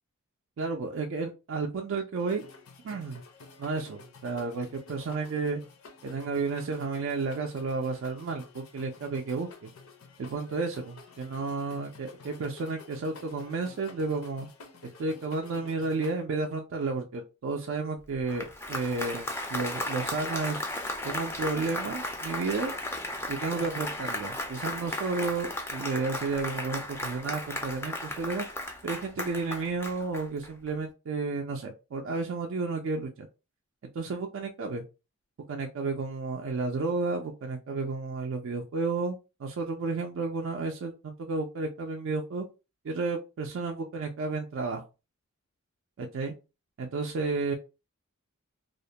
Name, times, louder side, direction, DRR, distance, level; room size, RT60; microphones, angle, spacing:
voice 1, 0.6-2.4 2.8-3.2 3.6-5.6 6.0-9.7 10.2-14.5 15.0-20.6 21.0-22.7 23.3-28.5 28.8-33.3 33.9-34.8 35.5-42.5 42.8-44.8 46.0-46.3 46.8-47.5, right 3 dB, 60° right, 3 dB, 0.3 m, -32 dB
sound 1, 2.2-16.2, left 3 dB, 75° left, 0.6 m, -51 dB
Applause, 18.1-30.7, left 1 dB, 10° left, 0.3 m, -35 dB
2.4 x 2.1 x 2.7 m, 0.29 s
head